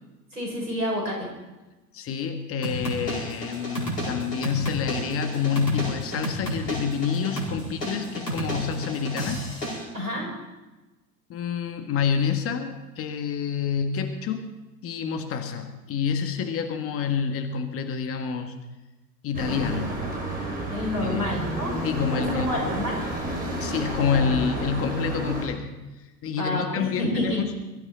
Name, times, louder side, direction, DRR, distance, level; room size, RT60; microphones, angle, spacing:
voice 1, 0.3-1.3 9.9-10.3 20.7-21.7 22.2-23.0 26.4-27.4, left 1 dB, 85° right, -1 dB, 6.6 m, -28 dB
voice 2, 1.9-9.4 11.3-14.5 14.8-18.5 19.2-19.9 21.0-21.4 21.8-22.5 23.6-25.7 26.2-27.5, left 6 dB, 30° left, 7 dB, 1.7 m, -28 dB
sound 1, 2.6-9.8, equal, 80° left, 4.8 m, -32 dB
sound 2, 19.3-25.5, right 1 dB, 20° right, 6.3 m, -30 dB
22.0 x 13.5 x 4.3 m, 1.1 s
figure-of-eight pair, 90°, 46 cm